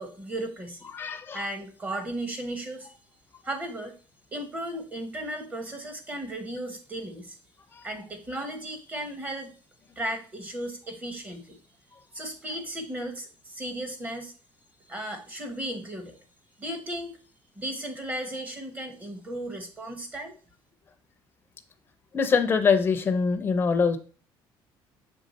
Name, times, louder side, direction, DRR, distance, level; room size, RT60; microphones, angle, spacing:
voice 1, 0.0-0.9 1.3-2.9 3.4-3.9 4.3-7.4 7.8-9.5 10.0-11.6 12.1-14.3 14.9-16.2 16.6-17.2 17.6-20.4, right 1 dB, 15° right, 6 dB, 1.0 m, -35 dB
voice 2, 0.9-1.5 7.7-7.9 22.1-24.0, left 5 dB, 20° left, 6 dB, 0.6 m, -24 dB
6.4 x 3.5 x 4.1 m, 0.38 s
cardioid pair, 165°, 10 cm